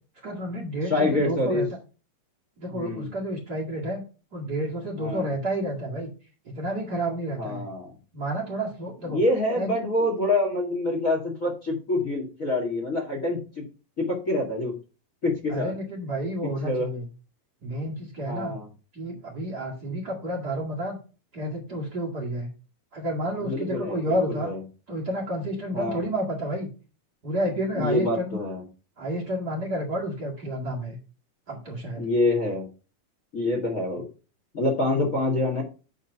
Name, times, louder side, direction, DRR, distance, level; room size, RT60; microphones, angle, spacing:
voice 1, 0.2-1.7 2.6-4.0 4.3-6.1 6.5-7.6 8.1-9.2 9.6-9.7 15.5-17.0 17.6-18.5 18.9-21.0 21.3-22.5 22.9-24.5 24.9-26.7 27.2-28.4 29.0-31.0 31.5-32.0, right 1 dB, 35° right, -3 dB, 2.4 m, -30 dB
voice 2, 0.9-1.6 2.7-3.1 5.0-5.3 7.4-7.9 9.1-13.6 14.0-14.7 15.2-15.7 16.6-16.9 18.2-18.7 23.4-24.6 25.7-26.0 27.7-28.6 32.0-32.6 33.3-34.1 34.5-35.6, left 2 dB, 30° left, 1 dB, 2.2 m, -26 dB
9.9 x 4.1 x 5.6 m, 0.34 s
omnidirectional pair, 3.6 m